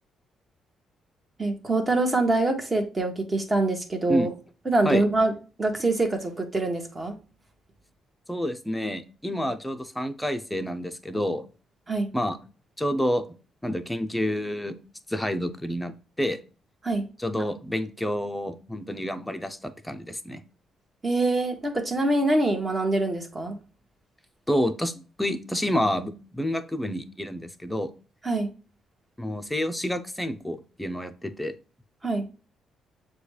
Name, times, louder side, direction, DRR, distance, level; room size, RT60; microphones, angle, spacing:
voice 1, 1.4-4.3 4.6-5.3 5.6-7.2 11.9-12.1 16.8-17.1 21.0-23.6 28.2-28.5 32.0-32.3, right 2 dB, 25° right, 4 dB, 1.1 m, -24 dB
voice 2, 8.3-11.5 12.1-12.4 12.8-13.2 13.6-14.7 15.1-16.4 17.2-20.4 24.5-24.9 25.2-27.9 29.2-31.5, equal, 5° left, 8 dB, 0.6 m, -28 dB
6.8 x 2.3 x 3.2 m, 0.35 s
cardioid pair, 90°, 0 cm